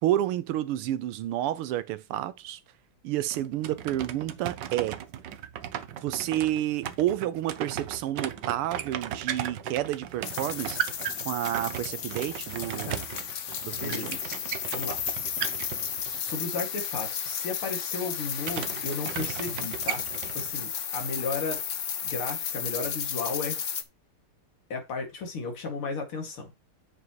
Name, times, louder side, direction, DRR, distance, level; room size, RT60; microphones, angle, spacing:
voice 1, 0.0-2.6 3.0-5.0 6.0-10.8 11.3-13.0 13.6-14.2, right 13 dB, 90° right, 1.6 m, -30 dB
sound 1, 3.3-16.3 18.4-20.5, right 10 dB, 65° right, 1.3 m, -36 dB
sound 2, 10.2-23.8, left 8 dB, 60° left, 0.7 m, -33 dB
voice 2, 13.8-14.2 14.7-15.0 16.2-20.0 20.3-21.6 22.0-23.6 24.7-26.5, left 4 dB, 80° left, 3.2 m, -34 dB
9.5 x 7.9 x 3.1 m
omnidirectional pair, 2.4 m